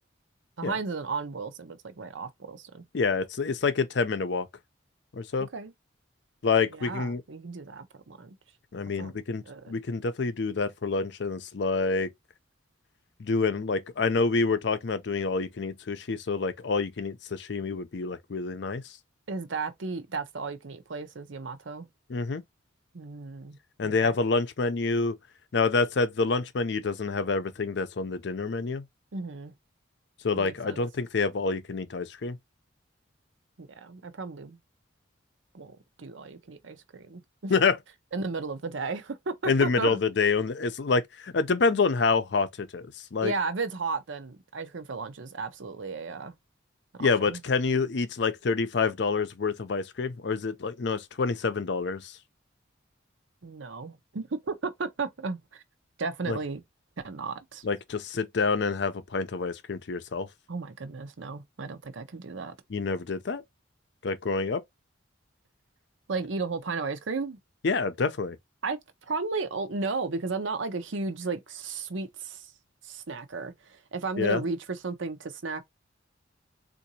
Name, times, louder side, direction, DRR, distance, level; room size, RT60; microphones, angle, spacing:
voice 1, 0.6-2.8 5.5-5.7 6.7-8.4 9.0-9.2 9.4-9.7 19.3-21.9 22.9-23.6 23.8-24.2 29.1-29.5 30.3-30.8 33.6-34.6 35.5-37.5 38.1-40.0 43.2-46.3 46.9-47.4 53.4-55.6 56.0-56.6 57.0-57.6 60.5-62.5 66.1-67.4 68.6-68.8 69.1-72.5 72.8-75.6, right 4 dB, 75° right, 0.7 m, -34 dB
voice 2, 2.9-4.5 5.1-5.5 6.4-7.2 8.7-12.1 13.2-18.8 22.1-22.4 23.8-25.2 25.5-28.8 30.2-32.4 37.5-37.8 39.5-43.3 47.0-52.2 56.3-56.4 57.6-60.3 62.7-63.4 64.0-64.6 67.6-68.4 74.2-74.4, left 4 dB, 60° left, 0.5 m, -27 dB
3.8 x 2.5 x 2.7 m
head